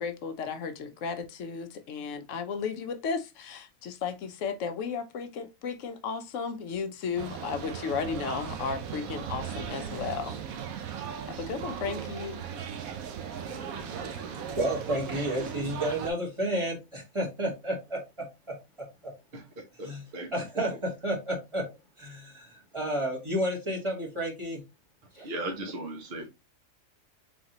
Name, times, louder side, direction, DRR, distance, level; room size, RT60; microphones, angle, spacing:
voice 1, 0.0-10.4 11.4-12.4, left 6 dB, 70° left, 1.0 m, -34 dB
sound 1, 7.2-16.1, right 8 dB, 90° right, 1.1 m, -37 dB
voice 2, 13.4-18.0 19.8-20.0 20.3-21.6 22.0-24.6 25.1-25.3, right 1 dB, 20° right, 1.5 m, -31 dB
voice 3, 19.8-20.3 20.6-20.7 25.2-26.3, right 1 dB, 50° right, 1.1 m, -36 dB
3.9 x 3.5 x 2.8 m
omnidirectional pair, 1.4 m